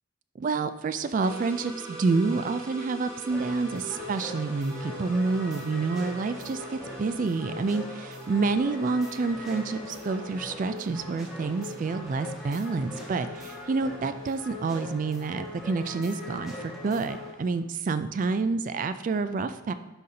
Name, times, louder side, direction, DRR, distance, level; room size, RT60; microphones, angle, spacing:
voice 1, 0.4-19.7, right 4 dB, 40° right, 11 dB, 0.3 m, -28 dB
sound 1, 1.2-17.6, right 3 dB, 20° right, 2.3 m, -45 dB
sound 2, 3.3-17.3, left 2 dB, ahead, 1.3 m, -41 dB
11.5 x 4.0 x 2.8 m, 1.2 s
head